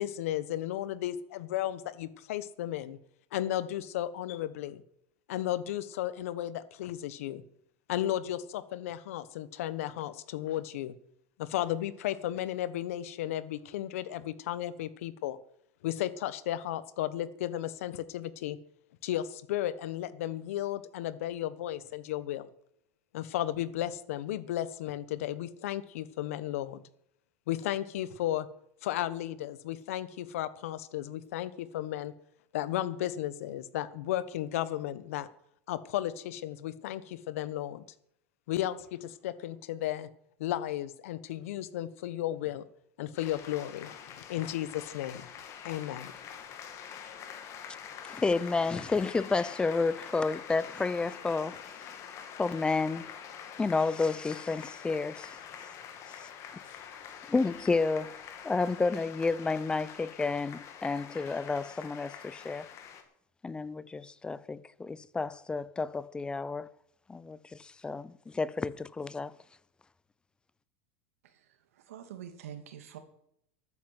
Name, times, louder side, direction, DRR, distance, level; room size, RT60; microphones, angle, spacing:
voice 1, 0.0-3.0 3.3-4.8 5.3-7.4 7.9-10.9 11.4-15.4 15.8-18.6 19.0-22.5 23.1-26.8 27.5-28.5 28.8-32.1 32.5-35.3 35.7-37.8 38.5-40.1 40.4-42.6 43.0-45.3 45.6-46.1, left 13 dB, 80° left, 1.2 m, -34 dB
sound 1, 43.2-63.0, left 8 dB, 40° left, 2.6 m, -46 dB
voice 2, 48.0-51.6 52.4-53.1 53.6-55.3 57.3-62.7 63.4-66.7 67.1-69.3, left 3 dB, 10° left, 0.5 m, -31 dB
voice 3, 71.7-73.0, right 9 dB, 90° right, 2.6 m, -45 dB
13.0 x 9.5 x 8.0 m
supercardioid pair, 130°, 7 cm